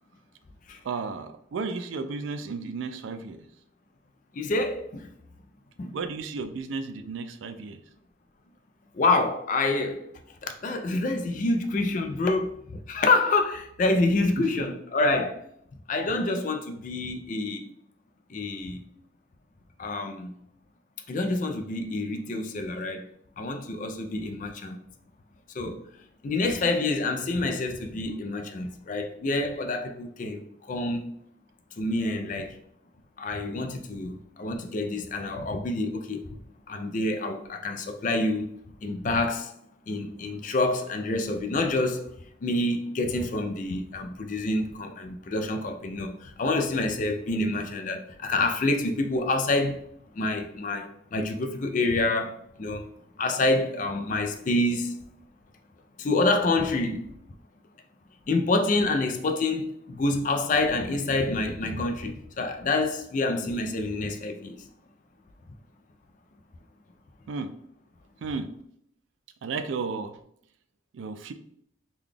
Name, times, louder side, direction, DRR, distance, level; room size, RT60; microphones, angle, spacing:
voice 1, 0.8-3.4 5.9-7.8 14.4-14.7 67.3-67.5 68.2-68.5 69.4-70.2 70.9-71.3, right 4 dB, 70° right, 0.3 m, -33 dB
voice 2, 4.3-5.1 5.8-5.9 8.9-10.1 10.4-15.4 15.9-17.7 18.3-18.8 19.8-20.3 21.1-23.0 23.4-24.8 25.6-25.8 26.2-31.1 31.8-32.5 33.2-36.2 36.7-38.5 38.8-39.5 39.9-42.1 42.4-49.8 50.2-52.8 53.2-55.0 56.0-57.1 58.3-64.7, left 2 dB, 40° left, 0.3 m, -27 dB
3.8 x 2.3 x 3.3 m
head